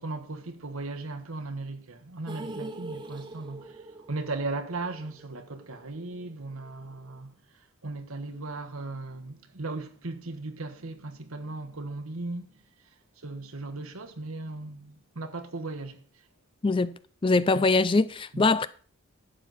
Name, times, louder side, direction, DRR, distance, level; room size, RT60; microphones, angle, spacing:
voice 1, 0.0-7.3 7.8-12.5 13.2-16.0 18.3-18.5, right 2 dB, 75° right, 1.3 m, -37 dB
sound 1, 2.3-6.4 6.7-6.8 7.1-7.2, right 2 dB, 20° right, 0.7 m, -43 dB
voice 2, 16.6-16.9 17.2-18.7, left 3 dB, 25° left, 0.4 m, -22 dB
11.5 x 7.9 x 4.1 m
head